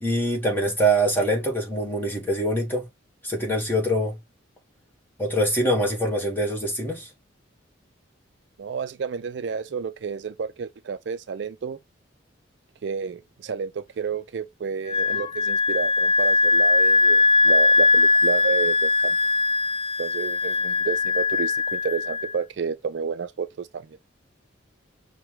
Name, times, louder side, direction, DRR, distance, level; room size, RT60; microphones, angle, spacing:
voice 1, 0.0-2.9 3.2-4.2 5.2-7.1, right 1 dB, 10° left, 1.5 m, -24 dB
voice 2, 8.6-11.8 12.8-19.2 20.0-23.9, right 6 dB, 60° right, 0.4 m, -31 dB
Wind instrument woodwind instrument, 14.9-22.3, left 3 dB, 25° left, 0.4 m, -20 dB
5.8 x 2.2 x 3.1 m
head